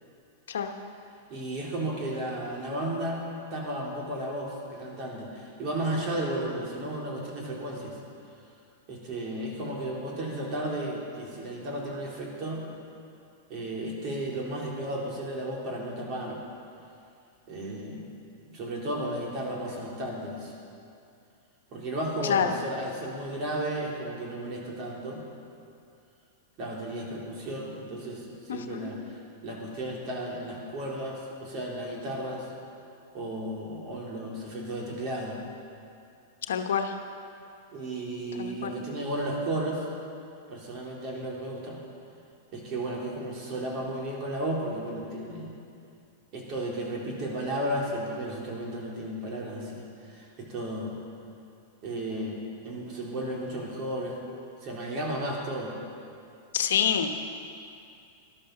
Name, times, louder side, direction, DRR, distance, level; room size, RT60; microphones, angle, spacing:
voice 1, 1.3-3.2 3.5-8.0 8.9-12.6 13.5-16.4 17.5-18.0 18.5-20.5 21.7-25.2 26.6-29.0 29.4-32.4 33.1-35.4 37.7-39.8 40.5-41.8 42.5-45.5 46.3-51.0 51.8-54.1 54.6-55.7, right 1 dB, 45° right, -3 dB, 4.0 m, -34 dB
voice 2, 22.2-22.5 28.5-28.9 36.5-36.9 38.4-38.7 56.5-57.2, left 7 dB, 80° left, 6 dB, 1.1 m, -27 dB
12.5 x 12.5 x 6.7 m, 2.5 s
hypercardioid pair, 115°, 0 cm